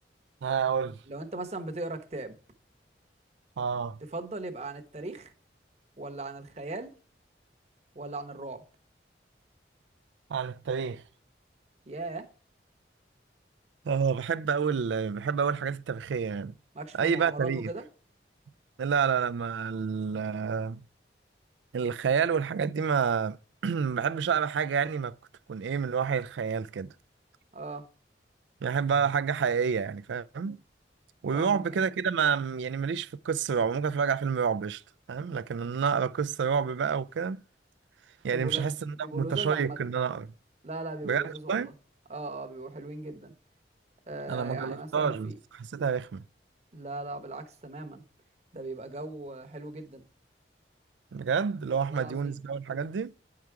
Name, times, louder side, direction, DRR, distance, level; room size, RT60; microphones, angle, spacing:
voice 1, 0.4-1.0 3.6-4.0 10.3-11.0 13.8-16.5 16.9-17.7 18.8-20.8 21.7-23.4 23.6-25.2 25.5-26.9 28.6-30.6 31.2-34.8 35.1-37.4 38.2-40.3 41.0-41.7 44.3-46.2 51.1-53.1, right 6 dB, 85° right, 0.4 m, -29 dB
voice 2, 1.1-2.4 4.1-5.3 6.0-6.9 7.9-8.6 11.9-12.3 16.7-17.8 27.5-27.9 31.3-31.8 38.3-38.7 39.0-39.8 40.6-41.7 42.1-43.3 44.1-45.3 46.7-48.0 48.5-50.0 51.9-52.4, right 2 dB, 35° right, 0.9 m, -38 dB
9.4 x 4.8 x 4.6 m
head